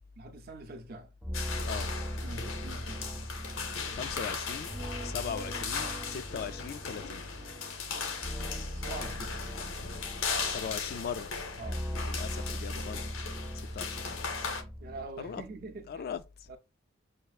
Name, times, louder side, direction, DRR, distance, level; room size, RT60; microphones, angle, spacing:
voice 1, 0.2-1.1 2.2-3.2 8.7-9.4 11.6-11.8 14.8-16.1 16.5-16.6, right 2 dB, 50° right, 0.6 m, -44 dB
sound 1, 1.2-15.0, equal, 5° right, 0.5 m, -40 dB
sound 2, 1.3-14.6, left 5 dB, 85° left, 0.7 m, -38 dB
voice 2, 3.9-4.7 5.0-7.3 10.5-11.3 12.1-13.0 13.7-14.5 15.2-15.4 15.9-16.2, left 7 dB, 50° left, 0.3 m, -39 dB
6.5 x 2.4 x 2.3 m
head